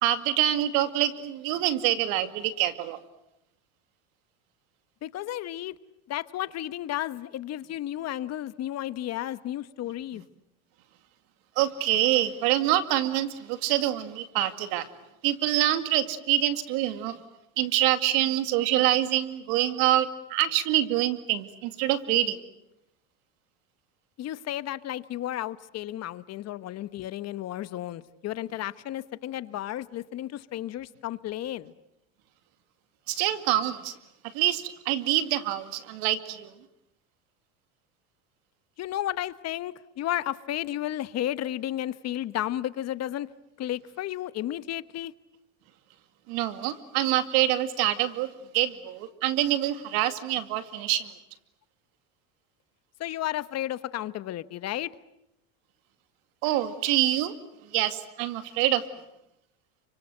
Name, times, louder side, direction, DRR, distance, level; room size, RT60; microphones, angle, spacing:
voice 1, 0.0-3.0 11.6-14.9 15.2-17.2 17.6-22.4 33.1-33.9 34.3-36.5 46.3-51.1 56.4-57.3 57.7-58.9, right 13 dB, 65° right, 10 dB, 2.4 m, -26 dB
voice 2, 5.0-5.8 6.1-10.2 24.2-31.7 38.8-43.3 43.6-45.1 53.0-54.9, left 13 dB, 45° left, 15 dB, 1.1 m, -33 dB
29.5 x 25.5 x 7.8 m, 0.86 s
supercardioid pair, 100°, 37 cm